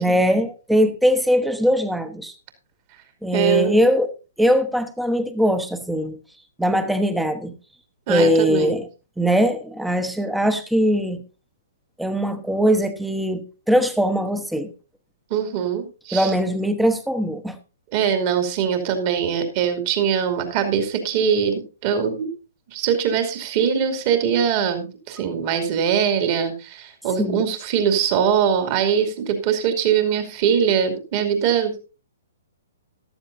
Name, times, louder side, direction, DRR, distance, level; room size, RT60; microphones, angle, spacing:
voice 1, 0.0-2.3 3.2-4.1 4.4-6.2 6.6-7.5 8.1-8.9 9.2-11.2 12.0-14.7 16.1-17.6 27.2-27.4, equal, 5° right, 1.1 m, -21 dB
voice 2, 3.3-3.8 8.1-8.8 15.3-16.3 17.9-22.3 22.7-31.8, right 7 dB, 40° right, 2.5 m, -22 dB
14.0 x 12.0 x 2.6 m
figure-of-eight pair, 120°, 0 cm